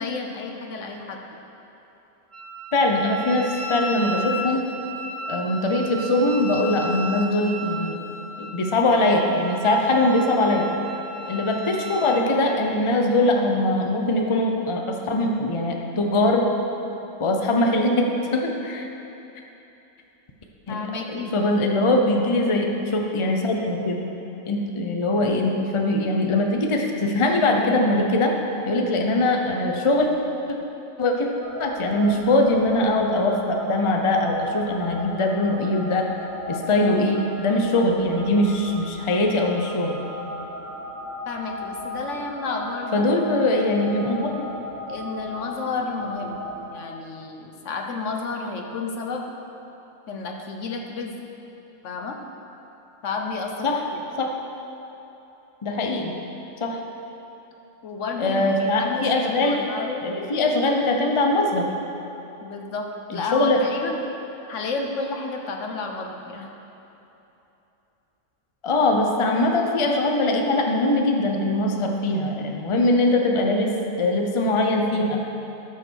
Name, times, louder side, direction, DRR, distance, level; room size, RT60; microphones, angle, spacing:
voice 1, 0.0-1.4 20.7-21.3 41.3-43.0 44.9-49.3 50.1-51.1 51.8-52.2 53.0-54.0 57.8-60.0 62.4-64.0 64.5-66.5, left 4 dB, 70° left, 2 dB, 1.2 m, -31 dB
Wind instrument woodwind instrument, 2.3-12.3, right 1 dB, 25° right, 0.9 m, -34 dB
voice 2, 2.7-4.6 5.3-8.0 8.4-10.7 11.3-16.5 17.2-18.8 20.7-20.8 21.1-24.0 24.4-28.3 28.7-30.1 30.5-30.6 31.0-31.3 31.6-36.1 36.5-40.0 42.9-44.5 53.6-53.8 54.2-54.3 55.6-56.1 56.6-56.8 58.2-59.6 60.0-61.7 63.1-63.6 68.6-75.2, left 2 dB, 30° left, 2 dB, 0.7 m, -22 dB
sound 1, 31.4-46.6, equal, 85° right, 2.1 m, -36 dB
13.0 x 5.8 x 6.3 m, 3.0 s
omnidirectional pair, 1.3 m